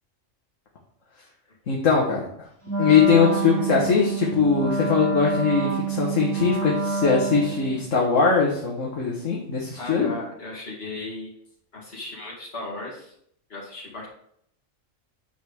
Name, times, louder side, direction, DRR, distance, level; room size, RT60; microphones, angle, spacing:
voice 1, 1.7-2.3 2.8-10.1, left 5 dB, 70° left, -2 dB, 1.7 m, -21 dB
Wind instrument woodwind instrument, 2.6-7.8, right 4 dB, 10° left, 2.4 m, -27 dB
voice 2, 9.8-11.3 11.7-13.1 13.5-14.1, left 2 dB, 50° left, -5 dB, 2.8 m, -36 dB
9.2 x 6.2 x 3.5 m, 0.69 s
omnidirectional pair, 1.4 m